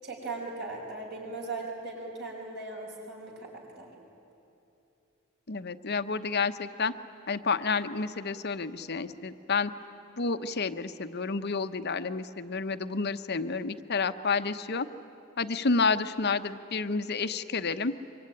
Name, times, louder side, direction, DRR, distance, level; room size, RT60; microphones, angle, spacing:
voice 1, 0.0-3.9, right 3 dB, 55° right, -1 dB, 6.4 m, -38 dB
voice 2, 5.5-6.9 7.3-9.7 10.2-14.9 15.4-17.9, left 4 dB, 50° left, 10 dB, 0.9 m, -30 dB
25.0 x 23.5 x 10.0 m, 2.9 s
head